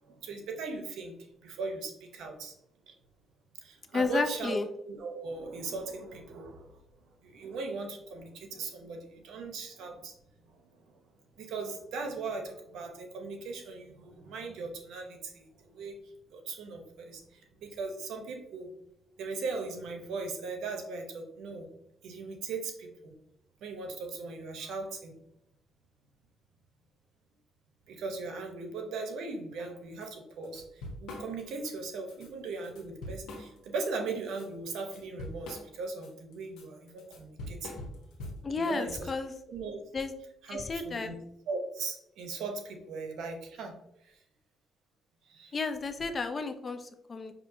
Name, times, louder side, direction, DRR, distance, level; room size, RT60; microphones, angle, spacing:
voice 1, 0.0-1.1 1.4-2.5 2.9-3.0 3.6-4.6 4.9-10.1 10.4-11.0 11.4-15.9 16.3-18.7 19.2-21.7 22.0-23.1 23.6-25.2 27.9-37.8 38.5-39.1 39.5-39.8 40.4-41.2 41.5-43.7 44.0-44.2 45.2-45.6, right 4 dB, 80° right, 4 dB, 0.7 m, -39 dB
voice 2, 3.9-4.7 38.4-39.3 39.9-40.1 40.5-41.1 45.5-47.3, left 4 dB, 35° left, 8 dB, 0.5 m, -32 dB
Drum kit / Drum, 30.0-30.1 30.4-31.7 32.1-32.3 32.6-33.9 34.3-38.6, left 1 dB, 85° left, 0.9 m, -43 dB
5.2 x 2.7 x 2.6 m, 0.78 s
cardioid pair, 90°, 0 cm